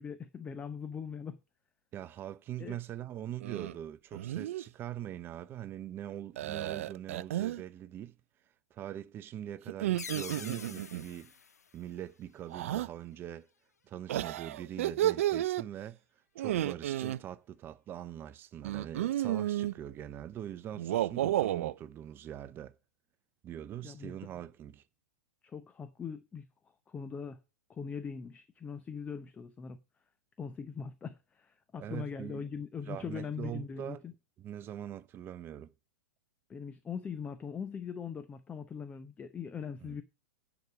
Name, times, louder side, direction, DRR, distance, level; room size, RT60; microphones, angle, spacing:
voice 1, 0.0-1.4 2.6-2.8 23.8-24.2 25.4-26.5 26.9-27.4 27.7-29.8 30.4-34.1 36.5-40.0, left 6 dB, 15° left, 0.8 m, -41 dB
voice 2, 1.9-8.2 8.7-11.3 11.7-13.5 13.9-16.0 16.4-22.7 23.4-24.8 31.8-32.5 32.9-34.0 34.4-35.7 39.8-40.0, right 11 dB, 25° right, 0.7 m, -42 dB
sound 1, 3.4-3.8 4.1-4.6 6.4-7.6 9.7-11.1 12.5-12.9 14.1-15.6 16.4-17.2 18.6-19.7 20.7-21.7, right 13 dB, 55° right, 0.5 m, -32 dB
sound 2, 10.0-12.5, left 6 dB, 80° left, 0.5 m, -46 dB
10.5 x 5.0 x 6.5 m
figure-of-eight pair, 105°, 8 cm